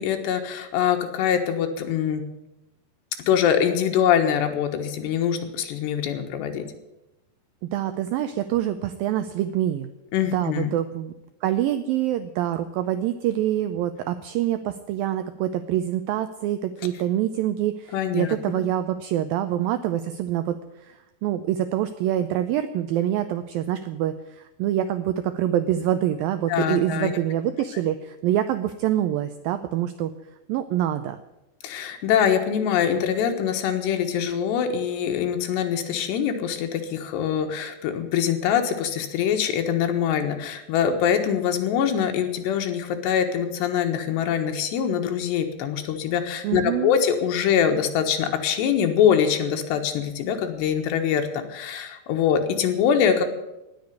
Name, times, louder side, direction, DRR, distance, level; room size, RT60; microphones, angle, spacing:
voice 1, 0.0-2.2 3.3-6.6 10.1-10.7 17.9-18.3 26.5-27.1 31.6-53.3, left 8 dB, 80° left, 5 dB, 3.5 m, -23 dB
voice 2, 7.6-9.9 10.3-11.1 11.4-30.1 30.5-31.2 46.4-46.9, right 12 dB, 90° right, 10 dB, 2.0 m, -25 dB
18.5 x 6.9 x 9.5 m, 0.95 s
omnidirectional pair, 4.9 m